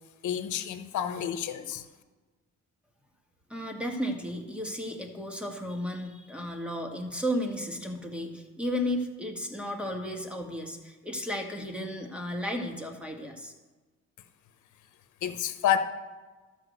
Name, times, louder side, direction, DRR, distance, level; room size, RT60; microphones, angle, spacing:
voice 1, 0.2-1.8 15.2-15.8, left 10 dB, 75° left, 8 dB, 1.1 m, -29 dB
voice 2, 3.5-13.5, equal, 5° right, 2 dB, 1.9 m, -34 dB
12.5 x 4.9 x 8.0 m, 1.3 s
cardioid pair, 90°, 30 cm